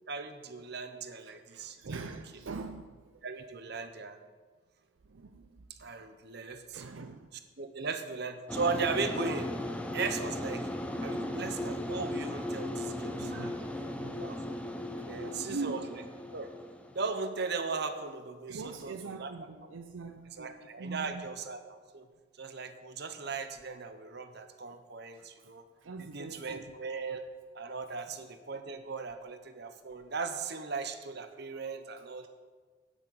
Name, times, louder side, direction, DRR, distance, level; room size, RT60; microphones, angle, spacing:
voice 1, 0.1-2.0 3.2-4.2 5.8-6.8 7.6-9.6 9.9-10.7 11.0-13.5 14.0-14.6 15.1-16.0 16.3-16.5 16.9-19.3 20.4-22.1 22.4-25.7 26.0-27.2 27.5-32.3, right 4 dB, 55° right, 1.0 m, -38 dB
voice 2, 1.5-3.2 5.0-5.7 6.7-7.3 13.1-14.3 15.2-16.1 18.5-21.2 25.1-25.3 25.8-26.7, right 4 dB, 80° right, 0.6 m, -43 dB
sound 1, 8.5-17.1, left 1 dB, 5° left, 0.7 m, -37 dB
8.8 x 8.0 x 7.8 m
head